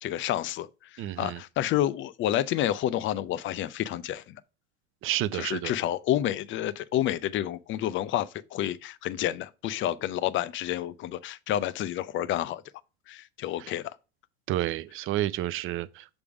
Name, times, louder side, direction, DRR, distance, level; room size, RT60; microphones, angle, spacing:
voice 1, 0.0-0.7 0.9-4.4 5.3-12.6 13.1-13.9, left 12 dB, 35° left, 0.6 m, -29 dB
voice 2, 1.0-1.4 5.0-5.7 13.6-13.7 14.5-16.1, right 14 dB, 40° right, 0.5 m, -30 dB
7.1 x 3.4 x 4.7 m
hypercardioid pair, 100°, 33 cm